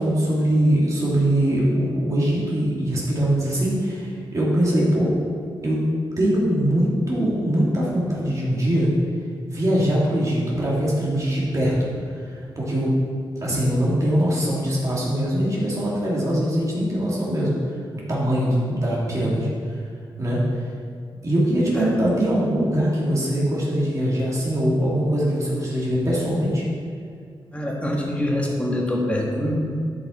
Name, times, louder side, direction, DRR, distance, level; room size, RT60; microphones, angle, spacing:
voice 1, 0.0-5.2 5.6-5.8 6.2-8.9 9.5-11.7 12.1-12.9 13.4-17.8 18.1-19.8 20.2-20.4 21.2-26.6, equal, 35° right, -6 dB, 2.2 m, -22 dB
voice 2, 27.5-29.5, left 1 dB, 15° left, -2 dB, 1.7 m, -25 dB
12.5 x 5.3 x 4.3 m, 2.3 s
wide cardioid pair, 110°, 9 cm